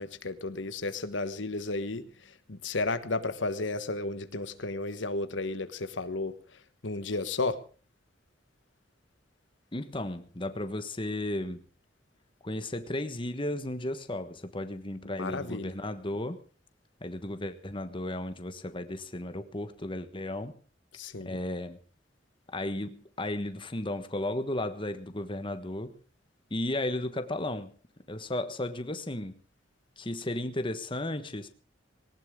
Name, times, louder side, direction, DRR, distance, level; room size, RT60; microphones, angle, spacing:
voice 1, 0.0-6.4 6.8-7.6 15.0-15.7 20.9-21.4, left 3 dB, 90° left, 1.3 m, -33 dB
voice 2, 9.7-11.6 12.4-16.4 17.0-20.6 21.2-21.8 22.5-25.9 26.5-27.7 28.1-29.4 30.0-31.5, left 1 dB, 30° left, 1.3 m, -34 dB
19.0 x 18.5 x 3.7 m
head